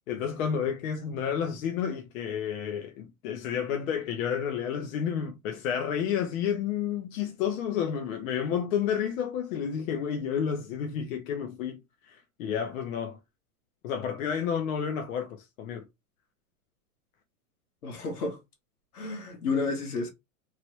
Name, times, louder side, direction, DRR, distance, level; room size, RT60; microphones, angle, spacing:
voice 1, 0.1-11.8 12.1-13.2 13.8-15.8, left 8 dB, 65° left, 0.8 m, -30 dB
voice 2, 17.8-18.4 18.9-20.1, left 3 dB, 90° left, 1.4 m, -31 dB
3.1 x 2.4 x 3.1 m
hypercardioid pair, 125°, 44 cm